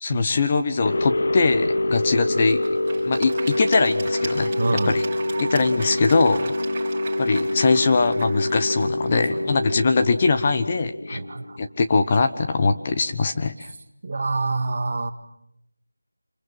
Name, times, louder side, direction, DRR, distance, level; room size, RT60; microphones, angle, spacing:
voice 1, 0.0-2.6 3.1-5.0 5.4-6.5 7.2-11.2 11.6-13.7, left 4 dB, 25° left, 7 dB, 1.1 m, -22 dB
sound 1, 0.9-11.7, left 1 dB, 45° left, 1.4 m, -26 dB
Applause / Crowd, 1.6-10.7, right 3 dB, 15° right, 5.7 m, -38 dB
voice 2, 4.6-5.0 9.1-9.5 11.1-11.6 14.0-15.1, right 3 dB, 40° right, 9 dB, 1.8 m, -27 dB
27.0 x 22.0 x 7.6 m, 0.82 s
figure-of-eight pair, 170°, 0 cm